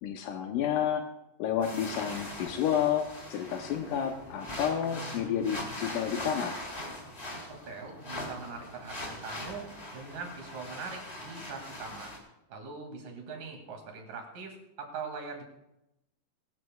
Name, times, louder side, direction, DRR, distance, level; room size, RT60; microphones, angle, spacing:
voice 1, 0.0-1.0 1.4-6.6, left 9 dB, 80° left, 4 dB, 2.4 m, -30 dB
sound 1, 1.6-12.2, left 1 dB, 20° left, 2.6 m, -41 dB
voice 2, 7.5-12.1 12.5-15.4, right 4 dB, 70° right, 2 dB, 3.9 m, -42 dB
22.5 x 12.5 x 2.3 m, 0.88 s
omnidirectional pair, 3.9 m